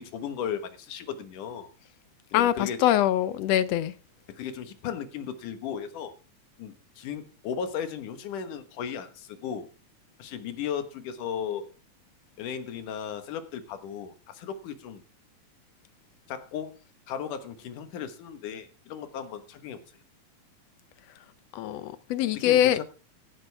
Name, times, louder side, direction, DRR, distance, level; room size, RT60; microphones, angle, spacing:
voice 1, 0.0-1.7 2.3-2.8 4.3-6.1 6.6-9.7 10.2-11.7 12.4-15.0 16.3-16.8 17.1-19.8 22.3-22.8, left 8 dB, 90° left, 2.9 m, -36 dB
voice 2, 2.3-3.9 21.5-22.8, left 12 dB, 75° left, 1.6 m, -23 dB
15.0 x 11.5 x 3.4 m
omnidirectional pair, 3.5 m